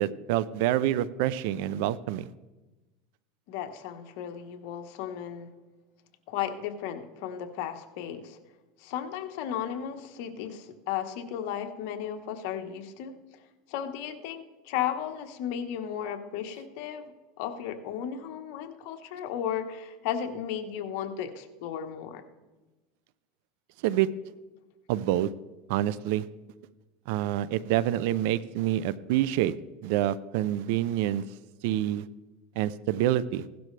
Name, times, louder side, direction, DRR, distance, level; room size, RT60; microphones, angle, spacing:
voice 1, 0.0-2.3 23.8-24.1 24.9-25.3 25.7-26.2 27.1-29.5 29.8-31.2 31.6-32.0 32.6-33.4, right 13 dB, 70° right, 18 dB, 0.5 m, -27 dB
voice 2, 3.5-5.5 6.3-8.4 8.8-13.1 13.7-17.1 17.4-22.2, left 9 dB, 65° left, 6 dB, 1.3 m, -35 dB
16.5 x 12.0 x 3.3 m, 1.1 s
supercardioid pair, 120°, 0 cm